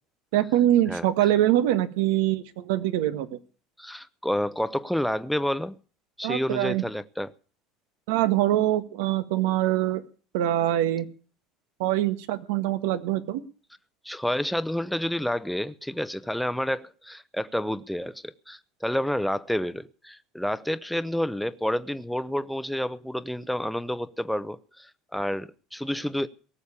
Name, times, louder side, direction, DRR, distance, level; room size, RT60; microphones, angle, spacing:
voice 1, 0.3-3.4 6.2-6.8 8.1-10.0 10.3-11.1 11.8-13.4, right 13 dB, 85° right, 1.5 m, -24 dB
voice 2, 3.8-5.8 6.2-7.3 14.0-26.3, equal, ahead, 0.8 m, -29 dB
18.5 x 7.2 x 8.5 m
supercardioid pair, 115°, 0 cm